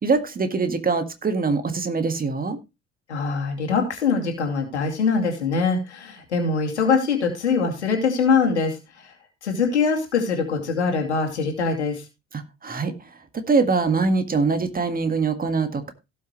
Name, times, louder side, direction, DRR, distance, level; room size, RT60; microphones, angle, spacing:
voice 1, 0.0-2.6 12.3-12.9 13.3-15.9, right 4 dB, 25° right, 9 dB, 1.8 m, -23 dB
voice 2, 3.1-8.8 9.0-9.1 9.4-12.0, left 5 dB, 80° left, 2 dB, 2.5 m, -23 dB
17.0 x 6.3 x 3.1 m, 0.26 s
figure-of-eight pair, 55°, 33 cm